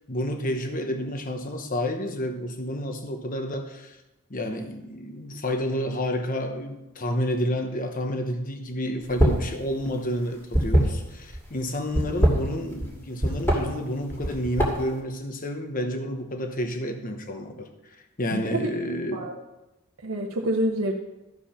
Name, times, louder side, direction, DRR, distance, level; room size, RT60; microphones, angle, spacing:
voice 1, 0.1-4.0 4.3-17.7 18.2-19.3, equal, 40° left, 5 dB, 1.0 m, -30 dB
sound 1, 9.0-9.5 9.8-11.4 11.9-12.9 13.2-13.6 14.1-14.9, right 1 dB, 10° left, 2.0 m, -22 dB
voice 2, 18.3-18.7 19.1-19.3 20.0-20.9, right 1 dB, 65° right, -1 dB, 0.9 m, -27 dB
13.5 x 4.8 x 5.8 m, 0.97 s
head